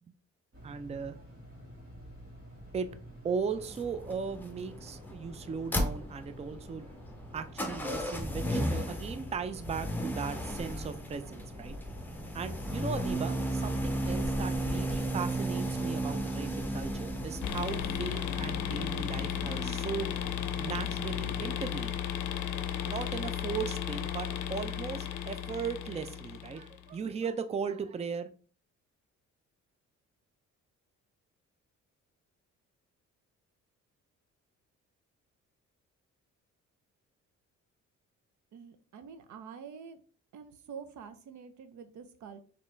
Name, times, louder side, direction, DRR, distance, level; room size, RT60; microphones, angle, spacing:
sound 1, 0.5-19.7, equal, 45° right, 2.2 m, -50 dB
voice 1, 0.6-1.2 2.7-2.9 3.2-6.9 7.3-11.8 12.3-20.2 20.6-22.0 22.8-28.3, right 6 dB, 20° right, 10 dB, 0.4 m, -37 dB
sound 2, 3.6-21.4, right 1 dB, 5° left, 0.8 m, -35 dB
sound 3, 17.4-26.9, left 9 dB, 90° left, 0.5 m, -35 dB
voice 2, 38.5-40.0 40.3-42.4, right 6 dB, 70° right, 10 dB, 0.7 m, -47 dB
4.2 x 3.1 x 3.2 m, 0.41 s
cardioid pair, 90°, 30 cm